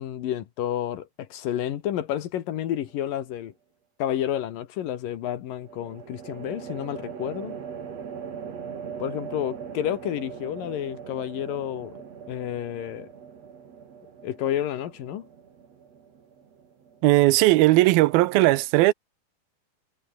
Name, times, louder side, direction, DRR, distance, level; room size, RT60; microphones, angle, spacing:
voice 1, 0.0-3.5 4.0-7.6 9.0-11.9 12.3-13.1 14.2-15.3, left 11 dB, 70° left, 3.0 m, -30 dB
sound 1, 2.5-3.1 5.6-17.0, right 7 dB, 45° right, 3.4 m, -40 dB
voice 2, 17.0-18.9, right 18 dB, 80° right, 2.5 m, -18 dB
omnidirectional pair, 4.4 m